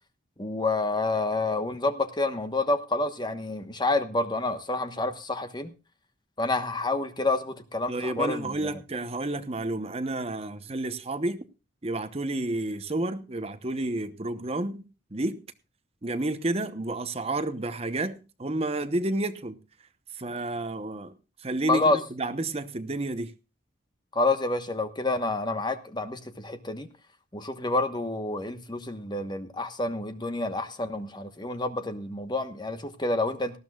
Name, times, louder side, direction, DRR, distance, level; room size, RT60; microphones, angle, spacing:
voice 1, 0.4-5.7 6.4-8.7 21.7-22.0 24.1-26.9 27.3-33.6, left 2 dB, 25° left, 1.2 m, -28 dB
voice 2, 7.9-11.5 11.8-14.8 15.1-15.4 16.0-19.6 20.1-21.1 21.4-23.3, right 2 dB, 30° right, 0.9 m, -30 dB
19.0 x 14.0 x 2.4 m
head